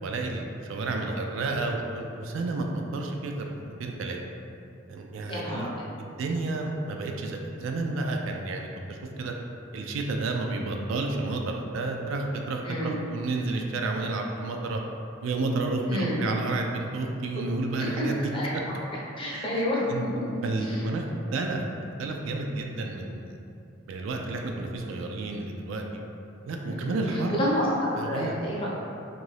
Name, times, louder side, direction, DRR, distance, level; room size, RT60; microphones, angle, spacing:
voice 1, 0.0-4.2 4.9-5.7 6.0-9.3 9.7-14.8 15.2-18.6 19.3-19.6 19.9-20.0 20.4-21.0 21.3-21.6 22.0-23.3 23.9-26.0 26.4-27.4 28.0-28.3, right 2 dB, 70° right, 2 dB, 0.3 m, -31 dB
voice 2, 5.3-5.7 12.6-13.0 15.9-16.2 17.8-18.1 18.3-18.5 19.2-19.8 20.1-20.8 26.6-28.7, left 1 dB, 25° left, -6 dB, 0.6 m, -30 dB
2.6 x 2.5 x 3.2 m, 2.5 s
head